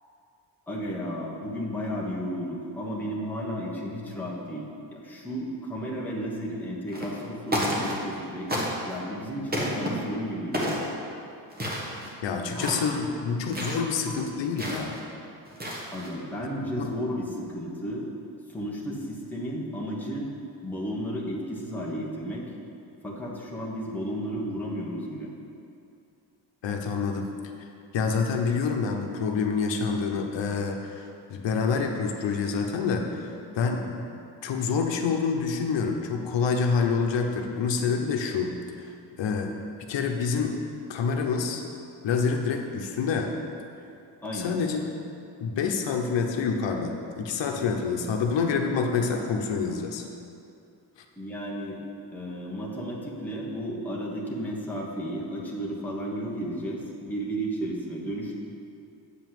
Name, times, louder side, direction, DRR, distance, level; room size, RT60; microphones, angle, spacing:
voice 1, 0.7-10.9 12.5-12.7 13.1-13.2 14.0-14.2 15.9-18.0 18.5-20.3 20.6-22.4 23.0-25.3 44.2-44.6 51.2-51.8 52.1-58.4, equal, 5° left, -5 dB, 1.2 m, -33 dB
sound 1, 6.9-7.2 7.5-8.2 8.5-9.0 9.5-9.9 10.5-10.9 11.5-12.1 12.5-12.9 13.5-13.8 14.6-15.0 15.5-16.1, equal, 20° right, 1.4 m, -30 dB
voice 2, 12.2-14.9 16.8-16.9 26.6-27.3 27.9-34.1 34.4-39.5 39.9-40.6 40.9-41.6 42.0-43.3 44.3-44.8 45.4-50.1, left 5 dB, 80° left, 3 dB, 1.0 m, -27 dB
8.5 x 5.3 x 7.7 m, 2.6 s
wide cardioid pair, 170°, 43 cm